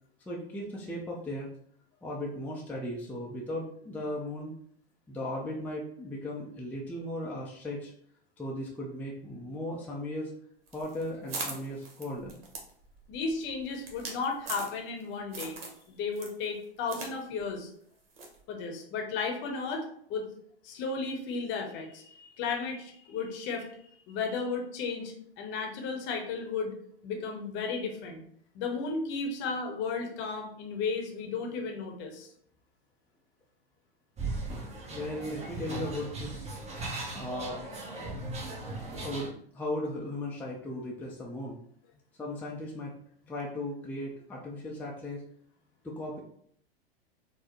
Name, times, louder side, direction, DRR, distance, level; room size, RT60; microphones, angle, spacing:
voice 1, 0.3-1.5 2.0-4.6 5.1-7.9 8.4-10.3 10.7-12.4 34.9-36.5 37.1-37.6 39.0-41.6 42.2-42.9 43.3-45.2 45.8-46.2, left 1 dB, 5° left, -3 dB, 0.5 m, -37 dB
sound 1, 10.7-15.0 15.3-15.8 16.1-17.1 17.4-17.5 18.2-18.4, right 3 dB, 70° right, 1.1 m, -40 dB
voice 2, 13.1-17.7 18.5-19.8 20.1-20.3 20.6-23.7 24.1-26.7 27.0-28.2 28.5-32.3, left 4 dB, 40° left, 3 dB, 0.8 m, -34 dB
sound 2, 34.2-39.3, right 2 dB, 20° right, 0.9 m, -38 dB
4.2 x 2.0 x 2.9 m, 0.65 s
hypercardioid pair, 100°, 30 cm